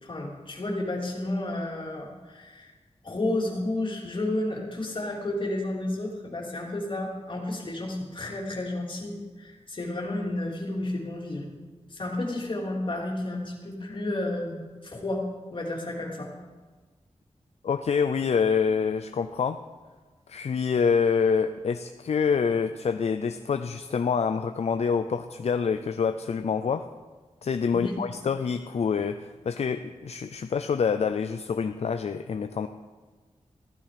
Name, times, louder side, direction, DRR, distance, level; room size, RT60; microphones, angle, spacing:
voice 1, 0.0-2.7 3.0-11.4 11.9-16.3 27.7-28.0, left 1 dB, 50° left, -2 dB, 3.2 m, -31 dB
voice 2, 17.6-19.6 20.3-26.9 27.4-32.7, left 6 dB, 70° left, 8 dB, 0.5 m, -26 dB
15.5 x 13.0 x 5.1 m, 1.4 s
wide cardioid pair, 115°, 11 cm